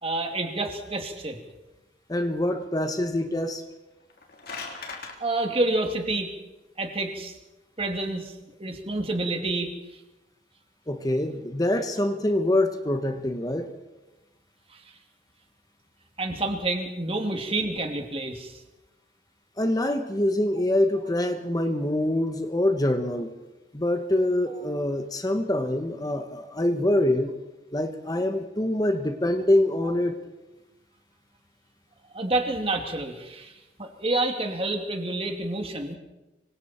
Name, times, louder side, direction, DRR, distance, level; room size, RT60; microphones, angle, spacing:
voice 1, 0.0-1.4 5.2-6.3 6.8-7.4 7.8-9.7 14.7-14.8 16.2-18.6 32.1-33.5 33.8-36.0, right 2 dB, 30° right, 4 dB, 2.7 m, -28 dB
voice 2, 2.1-3.6 10.9-13.7 19.6-23.3 23.7-27.3 27.7-30.2, left 1 dB, 20° left, 7 dB, 1.2 m, -25 dB
sound 1, 4.0-5.2, left 4 dB, 55° left, 3.3 m, -38 dB
26.0 x 25.0 x 4.5 m, 1.0 s
head